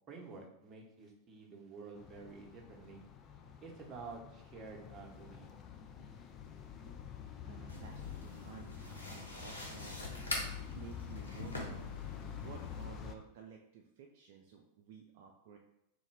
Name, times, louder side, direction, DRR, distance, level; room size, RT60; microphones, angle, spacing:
voice 1, 0.1-3.0 3.6-5.5, right 4 dB, 25° right, -1 dB, 0.8 m, -50 dB
sound 1, 1.9-13.1, left 8 dB, 30° left, 0.3 m, -48 dB
voice 2, 6.4-7.0 7.4-10.0 10.5-11.9 12.4-15.6, right 6 dB, 50° right, 2 dB, 0.3 m, -53 dB
sound 2, 7.7-12.8, left 1 dB, 80° left, 0.6 m, -44 dB
3.2 x 2.1 x 3.4 m, 0.83 s
figure-of-eight pair, 90°, 0 cm